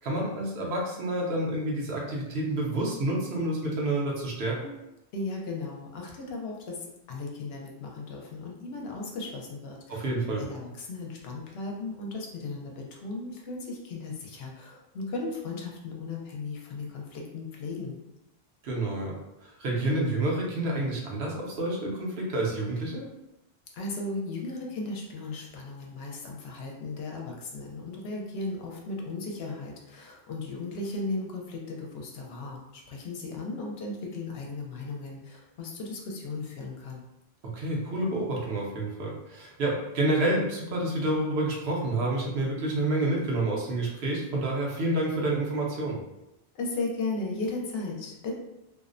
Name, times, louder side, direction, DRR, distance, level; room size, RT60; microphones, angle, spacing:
voice 1, 0.0-4.7 9.9-10.4 18.6-19.1 19.4-23.0 37.5-46.0, right 1 dB, 75° right, -2 dB, 0.9 m, -29 dB
voice 2, 5.1-18.0 23.7-37.0 46.5-48.3, left 3 dB, 70° left, 0 dB, 0.8 m, -36 dB
2.5 x 2.0 x 2.5 m, 0.90 s
omnidirectional pair, 1.1 m